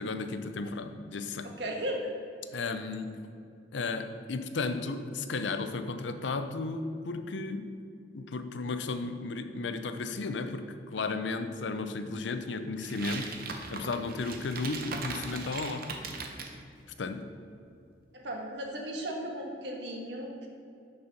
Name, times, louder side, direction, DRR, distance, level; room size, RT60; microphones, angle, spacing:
voice 1, 0.0-1.5 2.5-3.2 3.7-7.7 8.1-13.3 13.7-15.9 17.0-17.2, left 3 dB, 75° left, 9 dB, 0.5 m, -34 dB
voice 2, 1.4-2.1 18.1-20.5, equal, 70° right, 0 dB, 1.5 m, -36 dB
sound 1, 12.8-16.5, right 4 dB, 55° right, 0.8 m, -39 dB
6.6 x 5.4 x 5.8 m, 2.5 s
head